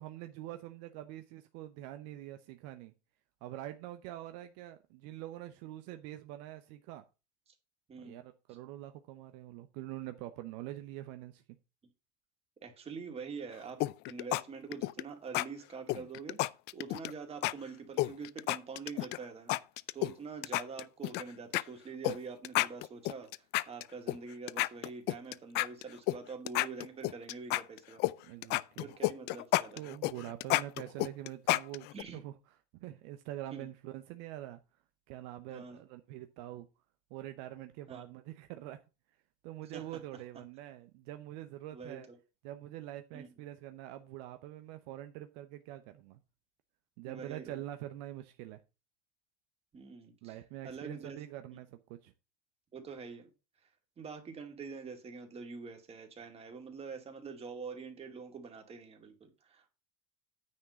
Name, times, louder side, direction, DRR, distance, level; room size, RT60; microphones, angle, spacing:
voice 1, 0.0-2.9 3.4-7.0 8.0-11.4 28.2-28.9 29.8-34.6 35.1-36.7 37.1-38.8 39.4-42.1 42.4-46.2 47.0-48.6 50.2-52.1, right 14 dB, 70° right, 0.8 m, -45 dB
voice 2, 7.9-8.2 12.6-13.8 14.1-16.4 16.7-19.6 19.9-23.3 23.7-28.0 28.7-29.8 31.9-32.2 33.5-33.7 35.5-35.8 37.9-38.0 39.7-39.9 41.7-42.0 43.1-43.3 47.0-47.6 49.7-50.4 50.6-51.2 51.5-51.6 52.7-53.3 54.0-59.7, right 5 dB, 30° right, 2.3 m, -45 dB
sound 1, 13.8-14.4 14.7-15.0 15.3-15.5 15.9-17.1 17.4-17.5 18.0-19.2 19.5-20.1 20.4-21.2 21.5-21.6 22.0-22.2 22.4-24.2 24.5-26.2 26.5-28.1 28.4-32.0, left 19 dB, 55° left, 0.4 m, -31 dB
9.5 x 3.6 x 6.9 m
supercardioid pair, 110°, 21 cm